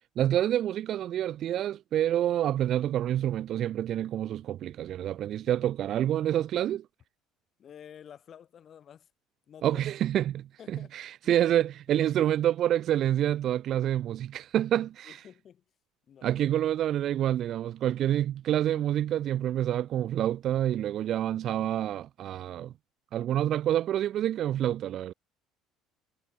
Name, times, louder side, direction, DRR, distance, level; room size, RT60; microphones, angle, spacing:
voice 1, 0.2-6.9 9.6-15.2 16.2-22.7 23.1-25.1, right 11 dB, 55° right, 0.4 m, -27 dB
voice 2, 7.6-9.1 9.5-9.8 10.6-10.9 11.2-11.4 11.9-12.1 15.0-15.6 16.1-16.4, left 9 dB, 45° left, 5.5 m, -50 dB
supercardioid pair, 105°, 0 cm